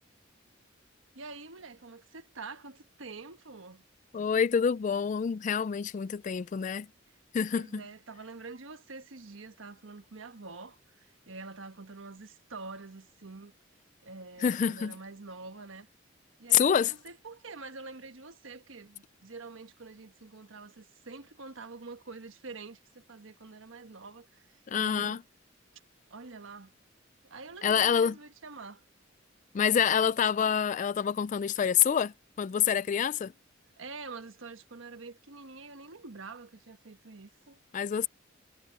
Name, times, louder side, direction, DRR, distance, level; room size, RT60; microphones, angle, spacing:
voice 1, 1.1-3.8 6.6-6.8 7.5-13.5 14.0-15.9 16.4-24.5 24.7-25.2 26.1-26.7 27.2-28.8 33.8-37.6, right 3 dB, 85° right, 1.3 m, -46 dB
voice 2, 4.1-6.9 7.3-7.8 14.4-14.9 16.5-16.9 24.7-25.2 27.6-28.1 29.5-33.3 37.7-38.1, left 7 dB, 40° left, 0.3 m, -27 dB
head